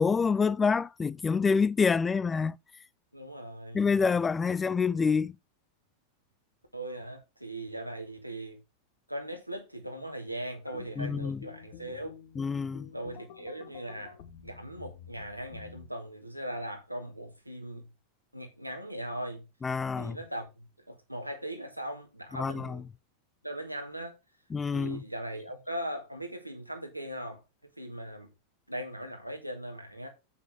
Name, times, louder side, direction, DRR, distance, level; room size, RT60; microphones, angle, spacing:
voice 1, 0.0-2.6 3.7-5.4 11.0-11.4 12.4-12.9 19.6-20.2 22.4-22.8 24.5-25.0, left 5 dB, 15° left, 0.4 m, -27 dB
voice 2, 3.1-3.8 6.7-8.6 9.1-12.2 12.9-17.9 18.3-19.5 20.0-22.8 23.4-24.1 24.7-27.4 27.8-28.3 28.7-30.1, right 1 dB, 90° right, 2.3 m, -39 dB
sound 1, 10.6-15.9, left 9 dB, 50° left, 1.5 m, -50 dB
8.3 x 7.3 x 3.7 m
figure-of-eight pair, 90°, 0 cm